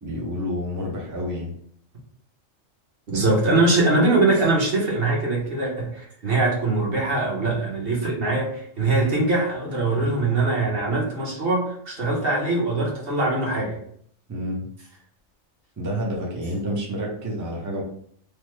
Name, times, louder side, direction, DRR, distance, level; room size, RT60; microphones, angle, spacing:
voice 1, 0.0-1.5 14.3-14.7 15.8-17.8, equal, 25° right, -3 dB, 0.4 m, -29 dB
voice 2, 3.1-13.8, right 2 dB, 50° right, -3 dB, 1.0 m, -22 dB
3.2 x 2.0 x 3.1 m, 0.63 s
omnidirectional pair, 1.3 m